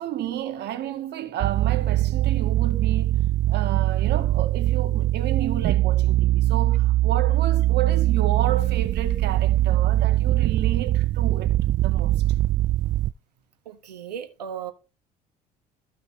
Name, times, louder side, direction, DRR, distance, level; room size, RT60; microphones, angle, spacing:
voice 1, 0.0-3.2 3.5-12.2, right 11 dB, 55° right, 2.1 m, -31 dB
sound 1, 1.4-13.1, right 15 dB, 40° right, 0.4 m, -22 dB
voice 2, 13.6-14.7, right 8 dB, 85° right, 1.5 m, -36 dB
15.0 x 5.9 x 3.2 m
figure-of-eight pair, 55°, 21 cm